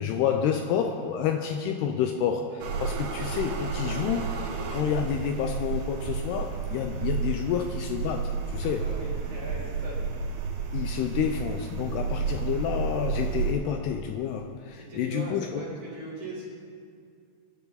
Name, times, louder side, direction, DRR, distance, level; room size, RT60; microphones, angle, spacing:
voice 1, 0.0-4.4 4.7-8.9 10.7-15.6, left 8 dB, 80° left, 5 dB, 2.6 m, -29 dB
sound 1, 2.6-13.5, right 5 dB, 70° right, 3.2 m, -31 dB
voice 2, 8.6-10.1 14.7-16.5, right 2 dB, 35° right, -6 dB, 4.2 m, -39 dB
24.0 x 10.5 x 4.1 m, 2.2 s
omnidirectional pair, 5.1 m